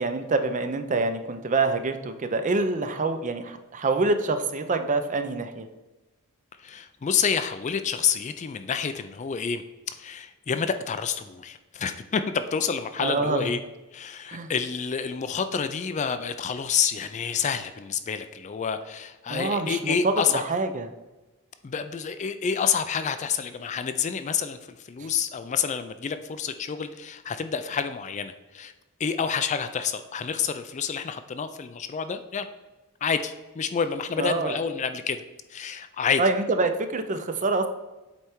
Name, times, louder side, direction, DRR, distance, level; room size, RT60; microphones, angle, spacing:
voice 1, 0.0-5.7 13.0-13.5 14.3-14.5 19.3-20.9 25.0-25.1 34.2-34.6 36.2-37.7, right 3 dB, 35° right, 9 dB, 0.5 m, -26 dB
voice 2, 6.6-9.6 10.0-13.6 13.9-20.4 21.6-24.6 24.8-28.7 29.0-32.5 33.0-35.2 35.5-36.2, left 6 dB, 30° left, 10 dB, 0.3 m, -28 dB
8.1 x 3.3 x 4.5 m, 1.1 s
head